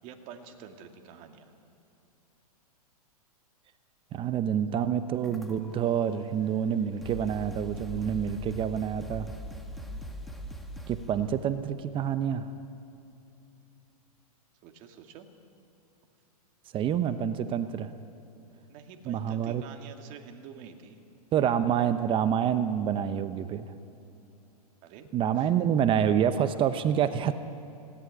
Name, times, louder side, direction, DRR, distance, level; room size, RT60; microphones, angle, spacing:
voice 1, 0.0-1.5 14.6-15.3 18.7-21.0 24.8-25.1 25.4-25.6, right 7 dB, 40° right, 5 dB, 2.3 m, -47 dB
voice 2, 4.1-9.3 10.9-12.5 16.7-17.9 19.0-19.6 21.3-23.7 25.1-27.3, right 9 dB, 25° right, 11 dB, 0.8 m, -27 dB
sound 1, 5.2-5.9 6.6-6.7 7.0-11.2, equal, ahead, 1.9 m, -41 dB
20.0 x 17.5 x 9.9 m, 2.7 s
hypercardioid pair, 125°, 20 cm